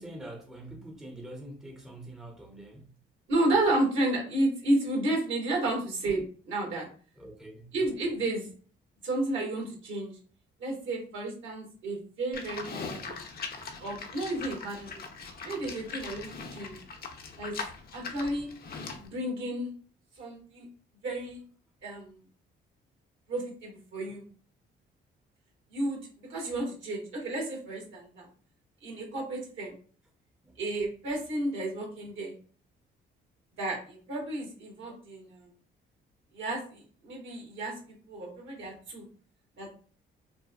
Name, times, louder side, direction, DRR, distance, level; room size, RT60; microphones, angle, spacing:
voice 1, 0.0-2.9 7.2-7.7 30.4-30.6, right 1 dB, 5° right, 0.5 m, -45 dB
voice 2, 3.3-6.9 7.7-8.5 9.0-10.1 10.6-13.1 13.8-14.9 15.4-16.8 17.4-17.5 17.9-18.5 19.0-19.7 20.2-20.7 21.0-21.4 21.8-22.2 23.3-24.2 25.7-28.3 28.8-29.7 30.6-32.3 33.6-35.4 36.3-37.8 38.1-39.0 39.6-39.7, right 2 dB, 70° right, 1.4 m, -32 dB
Livestock farm animals working animals, 12.3-19.1, left 4 dB, 50° left, 0.6 m, -41 dB
3.3 x 2.1 x 2.2 m
cardioid pair, 90°, 20 cm